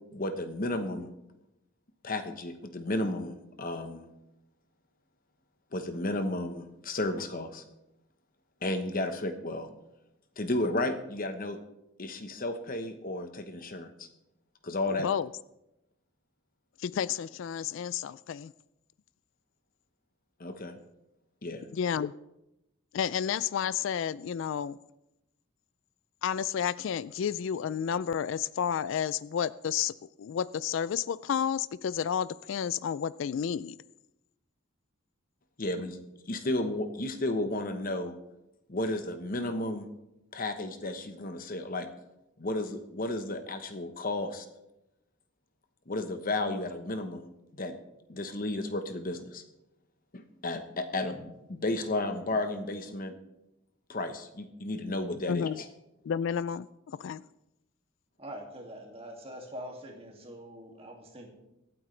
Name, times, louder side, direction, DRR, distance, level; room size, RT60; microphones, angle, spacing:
voice 1, 0.1-1.1 2.0-4.1 5.7-7.6 8.6-9.7 10.4-11.6 12.0-14.1 14.6-15.1 20.4-20.7 21.4-21.6 35.6-36.0 36.3-38.2 38.7-39.9 40.3-41.9 42.4-44.5 45.9-47.7 48.1-49.4 50.1-53.1 53.9-55.7, left 2 dB, 45° left, 8 dB, 1.0 m, -33 dB
voice 2, 15.0-15.3 16.8-18.5 21.7-22.1 22.9-24.8 26.2-29.9 30.2-33.8 55.3-55.6 56.0-57.2, left 8 dB, 65° left, 18 dB, 0.3 m, -31 dB
voice 3, 58.2-61.3, equal, 30° right, 1 dB, 2.3 m, -44 dB
23.5 x 8.8 x 3.3 m, 0.90 s
head